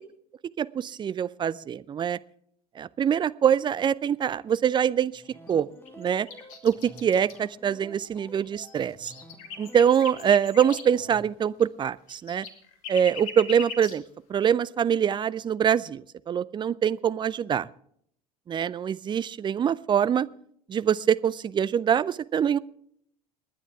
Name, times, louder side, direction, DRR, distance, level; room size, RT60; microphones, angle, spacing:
voice 1, 0.6-2.2 2.8-5.1 5.5-5.7 6.0-6.3 6.6-9.1 9.6-12.5 12.9-14.0 14.3-17.7 18.5-20.3 20.7-22.6, right 8 dB, 25° right, 17 dB, 0.5 m, -24 dB
sound 1, 5.1-11.2, right 1 dB, 10° left, 2.9 m, -50 dB
sound 2, 5.2-5.5 5.8-7.4 8.2-8.3 8.4-10.8 11.6-11.7 11.9-14.0, left 5 dB, 60° left, 2.4 m, -40 dB
29.5 x 9.9 x 3.5 m, 0.67 s
figure-of-eight pair, 65°, 20 cm